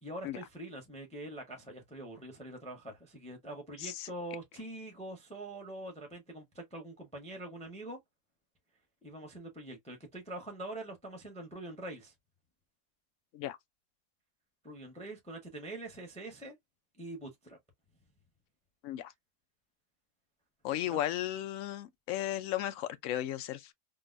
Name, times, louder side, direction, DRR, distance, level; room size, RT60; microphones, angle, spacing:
voice 1, 0.0-8.0 9.0-12.1 14.6-16.6 17.0-17.6 20.8-21.0, right 1 dB, 5° left, 0.5 m, -44 dB
voice 2, 20.6-23.7, left 12 dB, 70° left, 0.8 m, -35 dB
3.8 x 2.1 x 2.4 m
omnidirectional pair, 1.7 m